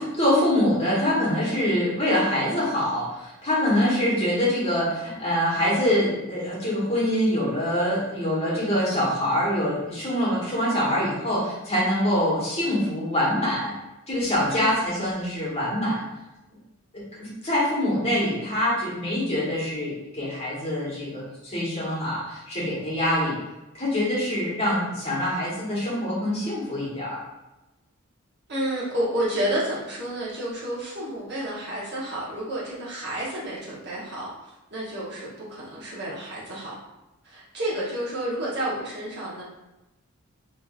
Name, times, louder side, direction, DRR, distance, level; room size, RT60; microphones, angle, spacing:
voice 1, 0.0-13.7 14.1-16.0 16.9-23.4 23.7-27.2, left 1 dB, 25° left, -8 dB, 1.3 m, -25 dB
voice 2, 28.5-34.3 34.7-36.7 37.2-39.4, right 1 dB, 50° right, -6 dB, 1.1 m, -30 dB
3.5 x 3.1 x 2.4 m, 0.99 s
head